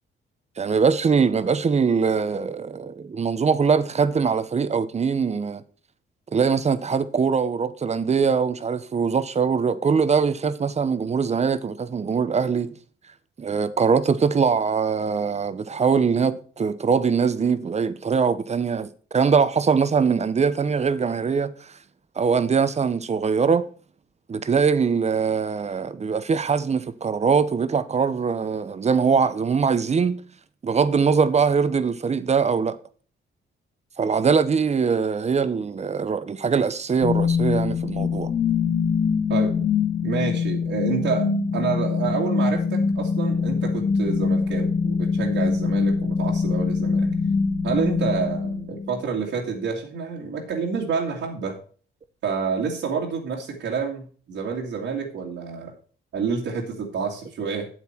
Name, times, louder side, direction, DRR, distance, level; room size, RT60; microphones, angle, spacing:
voice 1, 0.6-5.6 6.3-12.7 13.4-21.7 22.2-23.7 24.3-30.2 30.6-32.8 34.0-38.3, right 5 dB, 35° right, 0.9 m, -22 dB
sound 1, 37.0-49.0, left 5 dB, 60° left, 2.7 m, -23 dB
voice 2, 40.0-47.1 47.6-51.6 52.2-55.7 56.1-57.7, right 5 dB, 70° right, 2.2 m, -28 dB
8.3 x 8.2 x 4.5 m
cardioid pair, 90°, 20 cm